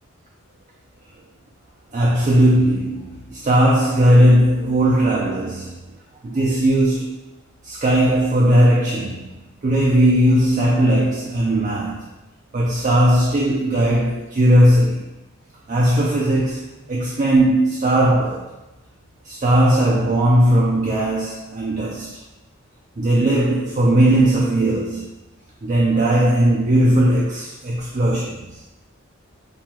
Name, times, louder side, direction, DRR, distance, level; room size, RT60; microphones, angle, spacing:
voice 1, 1.9-5.9 6.2-7.2 7.6-12.1 12.5-15.1 15.7-18.5 19.2-22.2 23.0-25.1 25.6-28.6, right 1 dB, 35° right, -3 dB, 0.4 m, -18 dB
5.9 x 2.3 x 2.9 m, 1.0 s
head